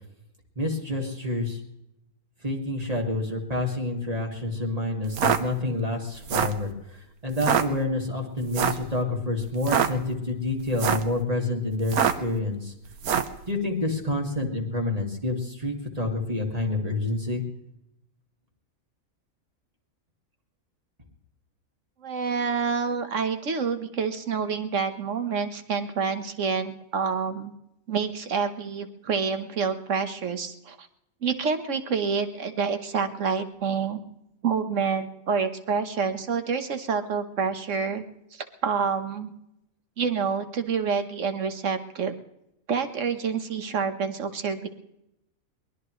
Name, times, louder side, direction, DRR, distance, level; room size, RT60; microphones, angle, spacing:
voice 1, 0.6-1.6 2.4-12.7 13.5-17.4, left 2 dB, 25° right, 1 dB, 2.4 m, -28 dB
sound 1, 5.0-5.4 6.1-6.6 7.3-7.6 8.5-8.9 9.5-9.9 10.6-11.1 11.8-12.3 13.0-13.4, right 8 dB, 80° right, 1.4 m, -24 dB
voice 2, 22.0-27.5 27.9-30.9 31.2-34.0 34.4-38.0 38.3-39.3 40.0-42.1 42.7-44.7, right 6 dB, 60° right, 8 dB, 1.5 m, -28 dB
23.0 x 20.0 x 3.2 m, 0.85 s
omnidirectional pair, 1.5 m